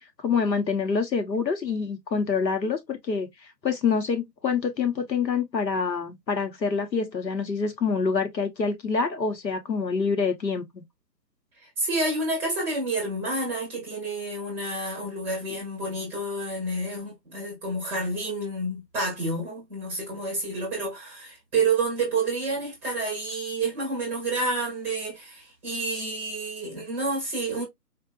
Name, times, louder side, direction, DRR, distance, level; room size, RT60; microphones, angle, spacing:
voice 1, 0.2-3.3 3.6-10.8, left 5 dB, 80° left, 1.4 m, -26 dB
voice 2, 11.8-27.7, right 2 dB, 5° right, 0.8 m, -29 dB
4.3 x 2.6 x 2.4 m
figure-of-eight pair, 145°, 50 cm